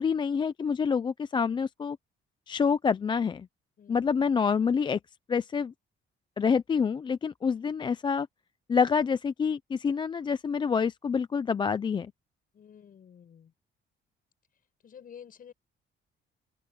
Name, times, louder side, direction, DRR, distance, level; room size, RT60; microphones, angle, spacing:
voice 1, 0.0-2.0 2.5-3.5 3.9-5.0 5.3-5.7 6.4-8.3 8.7-12.1, left 6 dB, 25° left, 0.4 m, -27 dB
voice 2, 3.8-4.1 12.5-13.5 14.8-15.5, left 8 dB, 45° left, 7.8 m, -50 dB
open air
cardioid pair, 165°, 20 cm